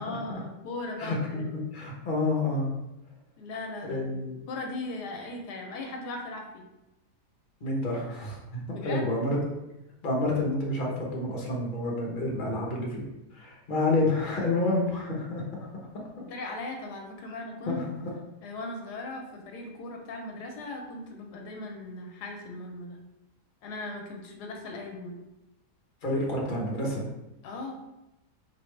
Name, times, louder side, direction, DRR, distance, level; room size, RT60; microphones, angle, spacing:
voice 1, 0.0-1.5 3.4-4.2 4.5-6.6 8.7-9.1 16.3-17.8 18.4-23.0 23.6-25.2 27.4-27.8, left 2 dB, 85° left, 2 dB, 1.3 m, -38 dB
voice 2, 1.0-2.7 3.8-4.4 7.6-9.4 10.0-15.7 15.9-16.0 17.7-18.0 26.0-27.0, left 2 dB, 35° left, -2 dB, 0.9 m, -29 dB
4.6 x 3.4 x 3.2 m, 0.95 s
omnidirectional pair, 1.7 m